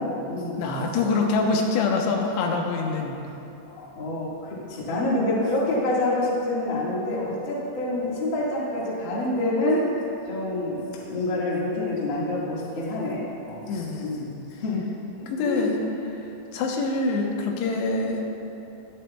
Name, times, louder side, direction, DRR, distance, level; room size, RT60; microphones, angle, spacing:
voice 1, 0.0-0.6 3.8-9.8 10.3-10.8 11.1-14.8 15.4-15.7, left 2 dB, 45° left, -6 dB, 1.6 m, -27 dB
voice 2, 0.6-3.2 13.7-14.2 15.3-15.8 16.5-18.3, left 3 dB, 90° left, 1 dB, 3.1 m, -25 dB
22.0 x 7.6 x 2.3 m, 2.9 s
omnidirectional pair, 4.7 m